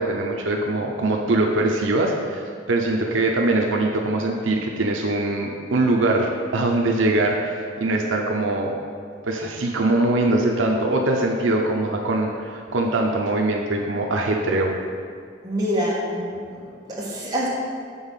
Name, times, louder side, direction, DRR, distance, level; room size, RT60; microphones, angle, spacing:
voice 1, 0.0-2.4 2.7-8.7 9.3-14.7, right 2 dB, 80° right, 1 dB, 0.7 m, -22 dB
voice 2, 15.4-17.5, equal, 20° right, -7 dB, 1.7 m, -26 dB
7.1 x 4.0 x 5.6 m, 2.3 s
head